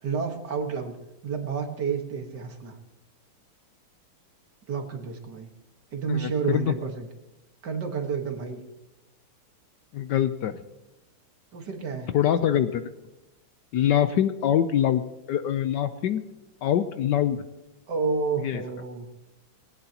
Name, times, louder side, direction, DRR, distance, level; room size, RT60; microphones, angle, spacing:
voice 1, 0.0-0.9 1.2-2.8 4.7-5.5 5.9-7.1 7.6-8.6 11.5-12.1 17.9-19.1, right 5 dB, 55° right, 4 dB, 2.0 m, -30 dB
voice 2, 6.1-6.7 9.9-10.6 12.1-12.8 13.7-15.0 15.3-16.2 16.6-17.4 18.4-18.6, left 10 dB, 70° left, 10 dB, 1.1 m, -24 dB
19.0 x 18.0 x 2.9 m, 0.99 s
omnidirectional pair, 2.2 m